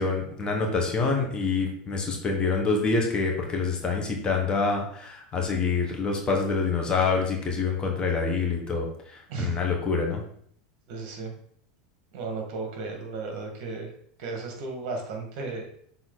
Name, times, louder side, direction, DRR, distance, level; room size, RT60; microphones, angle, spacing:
voice 1, 0.0-10.2, left 4 dB, 20° left, 1 dB, 1.3 m, -26 dB
voice 2, 9.3-9.6 10.9-11.3 12.1-13.9 14.2-15.7, right 3 dB, 55° right, 3 dB, 1.6 m, -34 dB
6.2 x 3.9 x 3.9 m, 0.63 s
supercardioid pair, 130°, 4 cm